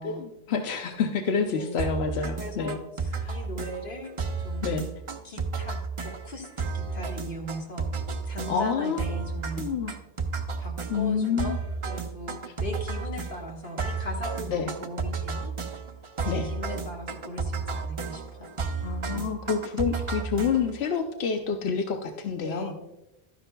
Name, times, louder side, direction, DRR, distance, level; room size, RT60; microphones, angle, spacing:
voice 1, 0.0-2.8 3.2-3.4 4.6-4.9 8.3-9.1 9.6-9.9 10.9-11.6 14.5-14.7 16.2-16.5 18.8-22.7, left 6 dB, 90° left, 5 dB, 0.9 m, -28 dB
sound 1, 1.8-20.9, right 4 dB, 35° right, 0.6 m, -33 dB
voice 2, 2.4-4.9 5.2-7.9 8.3-9.7 10.6-15.5 16.3-18.6 22.4-22.7, left 1 dB, 60° left, 0 dB, 1.7 m, -39 dB
12.0 x 10.0 x 2.2 m, 0.93 s
omnidirectional pair, 1.0 m